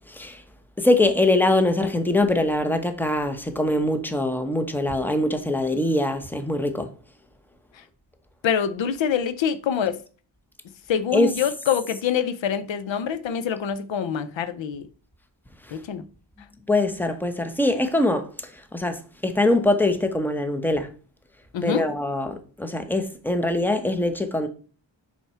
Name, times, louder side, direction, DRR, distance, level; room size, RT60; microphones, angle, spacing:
voice 1, 0.1-0.4 0.8-6.9 11.1-11.3 15.7-15.8 16.7-20.9 21.6-24.5, left 1 dB, 5° left, 0.9 m, -23 dB
voice 2, 8.4-10.0 10.9-14.8 15.7-16.0 21.5-21.8, left 8 dB, 80° left, 0.7 m, -25 dB
5.6 x 4.8 x 4.3 m
wide cardioid pair, 90°, 45 cm